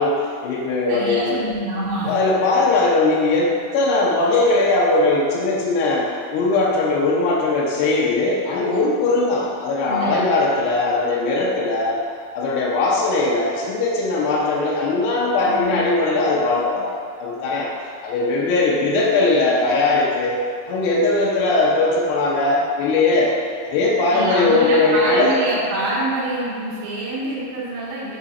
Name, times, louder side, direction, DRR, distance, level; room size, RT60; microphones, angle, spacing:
voice 1, 0.0-1.4 2.1-12.0 12.3-16.9 17.2-17.7 18.0-20.4 20.7-23.3 23.6-25.4, left 2 dB, 80° left, -4 dB, 2.5 m, -19 dB
voice 2, 0.9-2.1 9.9-10.2 15.4-15.8 24.1-28.2, right 1 dB, 75° right, -7 dB, 2.1 m, -25 dB
6.5 x 3.7 x 4.1 m, 2.2 s
omnidirectional pair, 5.2 m